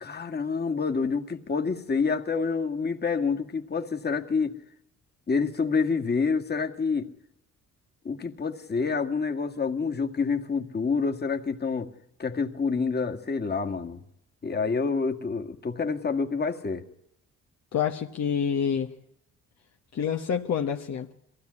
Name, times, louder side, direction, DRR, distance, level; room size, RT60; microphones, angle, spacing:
voice 1, 0.0-4.5 5.3-7.1 8.0-11.9 12.2-14.0 14.4-16.8, left 5 dB, 35° left, 2.1 m, -27 dB
voice 2, 17.7-18.9 19.9-21.1, left 7 dB, 60° left, 1.3 m, -27 dB
23.0 x 16.0 x 9.7 m
cardioid pair, 90°, 30 cm